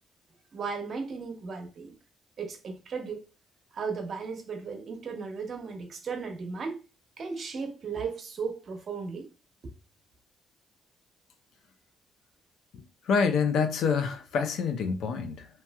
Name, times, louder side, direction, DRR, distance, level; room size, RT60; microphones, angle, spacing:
voice 1, 0.5-2.0 2.4-3.3 3.7-6.8 7.2-9.3 9.6-9.7, right 5 dB, 50° right, 0.8 m, -36 dB
voice 2, 12.7-15.5, left 5 dB, 75° left, 0.5 m, -27 dB
3.0 x 2.7 x 2.2 m
cardioid pair, 90°, 0 cm